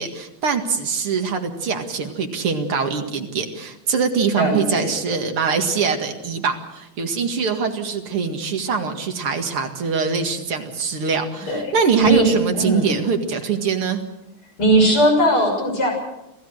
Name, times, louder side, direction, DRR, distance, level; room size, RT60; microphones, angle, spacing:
voice 1, 0.0-14.0, right 5 dB, 85° right, 5 dB, 2.9 m, -23 dB
voice 2, 4.4-4.9 11.5-11.6 12.0-12.3 12.6-13.0 14.6-15.9, right 1 dB, 80° left, 1 dB, 7.3 m, -18 dB
27.0 x 16.5 x 6.5 m, 0.93 s
omnidirectional pair, 2.3 m